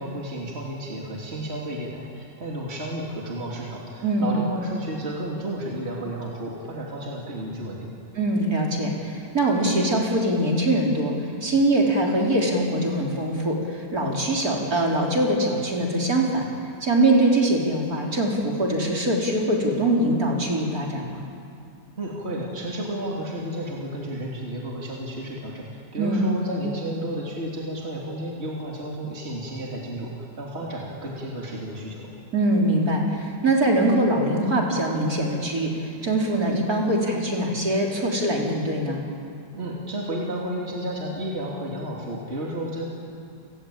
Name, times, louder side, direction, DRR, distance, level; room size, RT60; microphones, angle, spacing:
voice 1, 0.0-7.9 22.0-32.1 39.5-42.9, right 1 dB, 35° right, -3 dB, 3.3 m, -32 dB
voice 2, 8.2-11.1 11.4-16.5 16.8-21.2 26.0-26.3 32.3-39.0, right 1 dB, 55° right, -1 dB, 4.3 m, -23 dB
29.5 x 19.5 x 8.8 m, 2.4 s
omnidirectional pair, 1.9 m